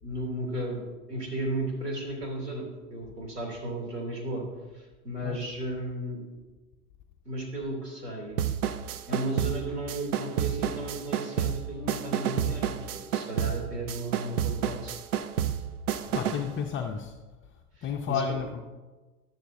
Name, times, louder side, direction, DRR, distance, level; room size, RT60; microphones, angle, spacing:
voice 1, 0.0-2.6 2.9-4.4 4.7-6.2 7.2-8.4 9.1-14.9 17.8-18.2, right 1 dB, 90° right, -1 dB, 3.0 m, -34 dB
sound 1, 8.4-16.5, right 9 dB, 70° right, 0.7 m, -30 dB
Bass guitar, 11.7-14.4, left 3 dB, 35° right, 2.9 m, -52 dB
voice 2, 16.0-17.1 17.8-18.6, left 7 dB, 25° left, 3 dB, 0.6 m, -31 dB
12.0 x 11.5 x 2.7 m, 1.2 s
hypercardioid pair, 95°, 46 cm